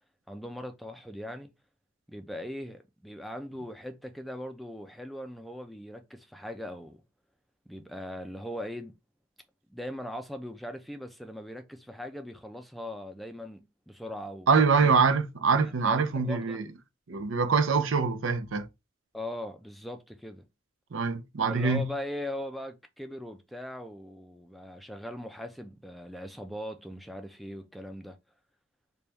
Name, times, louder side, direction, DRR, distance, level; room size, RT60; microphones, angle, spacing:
voice 1, 0.3-1.5 2.1-7.0 7.7-8.9 9.7-15.0 15.6-16.6 19.1-20.4 21.5-28.2, left 1 dB, ahead, 0.3 m, -40 dB
voice 2, 14.5-16.6 17.1-18.7 20.9-21.9, right 5 dB, 85° right, 0.6 m, -24 dB
4.0 x 2.3 x 3.4 m
head